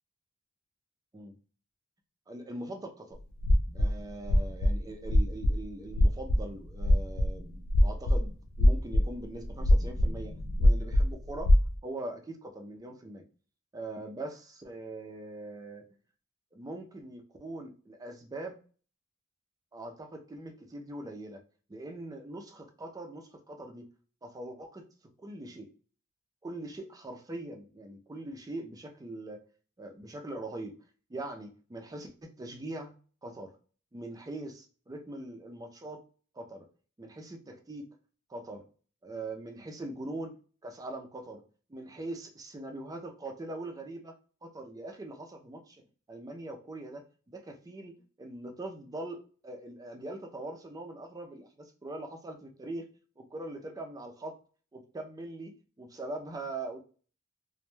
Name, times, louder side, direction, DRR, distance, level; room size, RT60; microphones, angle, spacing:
voice 1, 2.3-3.2 3.7-11.5 11.8-13.2 13.7-15.8 16.5-18.6 19.7-21.4 21.7-23.9 24.2-25.7 26.4-29.4 29.8-30.7 31.1-32.9 33.2-33.5 33.9-36.0 36.3-36.7 37.0-37.9 38.3-38.6 39.0-40.3 40.6-41.4 41.7-44.2 44.4-45.8 46.1-52.9 53.2-54.4 54.7-56.8, right 2 dB, 15° right, 3 dB, 0.3 m, -42 dB
sound 1, 3.4-4.8 5.1-5.6 5.9-8.2 8.6-9.1 9.4-11.7, left 1 dB, 65° left, 0.3 m, -23 dB
2.1 x 2.0 x 3.0 m, 0.40 s
head